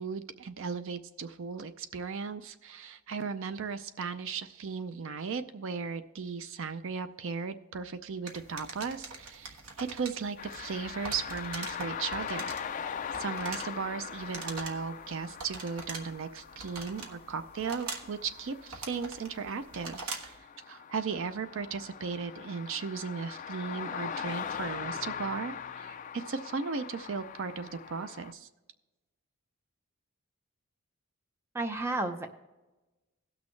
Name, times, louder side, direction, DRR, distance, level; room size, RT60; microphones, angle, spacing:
voice 1, 0.0-12.5 13.2-28.5, right 5 dB, 60° right, 11 dB, 0.5 m, -36 dB
sound 1, 8.3-20.4, right 3 dB, 75° right, 1.4 m, -44 dB
sound 2, 10.4-28.3, left 7 dB, 35° left, 0.3 m, -41 dB
voice 2, 31.5-32.3, right 2 dB, 10° right, 6 dB, 0.6 m, -31 dB
17.5 x 6.2 x 3.2 m, 1.1 s
head